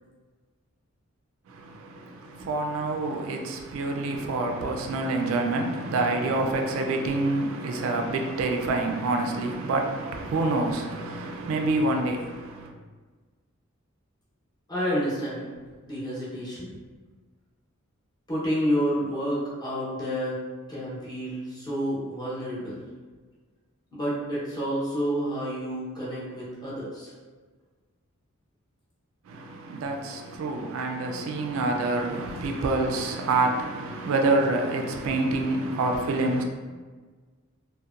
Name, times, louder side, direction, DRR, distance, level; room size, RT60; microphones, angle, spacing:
voice 1, 1.5-12.7 29.3-36.4, right 2 dB, 70° right, 0.3 m, -27 dB
voice 2, 14.7-15.5 15.8-16.7 18.3-20.4 20.7-22.9 23.9-27.1, equal, 20° left, 0.7 m, -29 dB
2.6 x 2.1 x 2.3 m
head